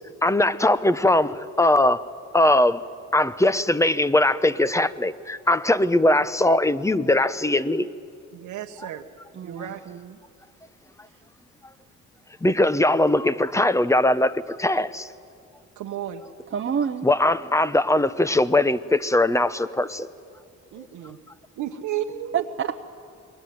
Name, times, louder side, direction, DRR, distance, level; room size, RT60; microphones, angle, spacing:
voice 1, 0.2-2.0 2.3-2.8 3.1-7.9 12.4-15.1 17.0-20.1, left 1 dB, 10° left, 15 dB, 0.9 m, -20 dB
voice 2, 8.3-9.0 9.4-9.8 15.8-16.2 20.7-21.2 21.6-22.4, right 11 dB, 80° right, 2 dB, 1.2 m, -32 dB
voice 3, 9.3-10.2 16.5-17.1 22.6-22.8, right 7 dB, 40° right, 5 dB, 0.9 m, -29 dB
27.5 x 22.5 x 9.4 m, 2.4 s
cardioid pair, 90°, 30 cm